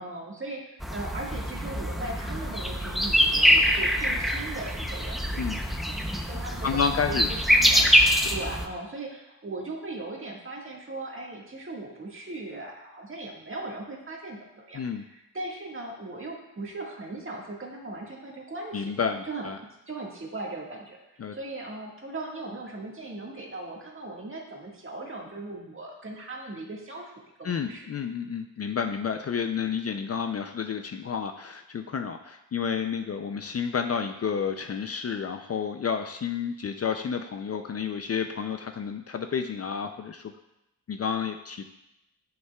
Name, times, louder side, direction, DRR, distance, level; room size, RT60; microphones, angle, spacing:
voice 1, 0.0-18.9 19.2-19.5 19.9-27.1 27.4-27.9, right 2 dB, 35° right, -2 dB, 1.7 m, -38 dB
sound 1, 0.8-8.6, equal, ahead, 0.6 m, -24 dB
voice 2, 6.6-7.3 7.8-7.9 14.7-15.0 18.7-19.6 21.2-21.4 27.4-40.3 40.9-41.6, left 6 dB, 45° left, 6 dB, 0.4 m, -30 dB
13.0 x 5.5 x 2.3 m, 0.88 s
wide cardioid pair, 105°, 36 cm